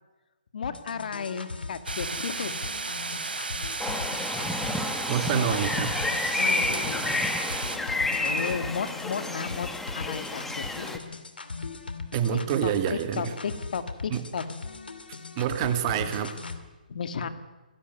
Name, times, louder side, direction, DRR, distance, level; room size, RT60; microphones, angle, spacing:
voice 1, 0.5-2.5 5.3-5.6 6.4-7.3 8.2-9.7 9.9-11.0 12.3-14.4 16.9-17.3, left 6 dB, 60° left, 10 dB, 2.1 m, -34 dB
sound 1, 0.6-16.6, left 4 dB, 85° left, 2.6 m, -39 dB
sound 2, 1.9-7.8, right 3 dB, 85° right, 2.8 m, -33 dB
sound 3, 3.8-11.0, left 2 dB, 5° left, 1.6 m, -30 dB
voice 2, 5.1-5.9 12.1-13.3 14.1-14.2 15.4-16.4, right 9 dB, 30° right, 9 dB, 2.0 m, -27 dB
19.5 x 17.5 x 9.5 m, 1.2 s
hypercardioid pair, 145°, 5 cm